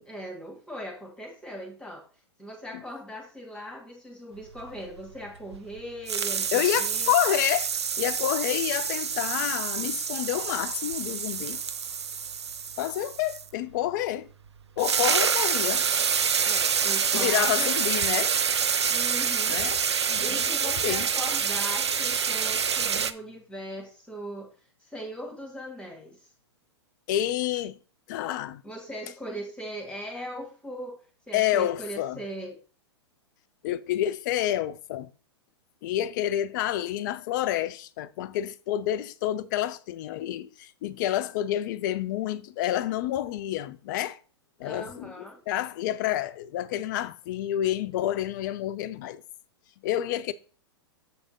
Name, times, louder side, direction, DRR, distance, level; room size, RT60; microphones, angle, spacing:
voice 1, 0.1-2.1 2.4-7.1 16.4-17.7 18.9-19.6 20.2-24.5 24.8-26.3 28.6-31.0 31.3-32.6 44.6-45.4, equal, 5° left, 1.7 m, -39 dB
sound 1, 4.6-5.8 6.1-13.5 14.5-14.6 14.8-23.1, right 7 dB, 70° right, 0.6 m, -27 dB
voice 2, 6.5-7.7 8.0-11.6 12.8-14.3 14.8-15.9 17.1-18.3 19.5-19.8 20.1-21.1 27.1-27.8 28.1-28.6 31.3-32.2 33.6-35.1 35.8-44.2 44.6-49.2 49.8-50.3, left 12 dB, 45° left, 0.6 m, -29 dB
7.5 x 3.5 x 5.2 m
figure-of-eight pair, 105°, 14 cm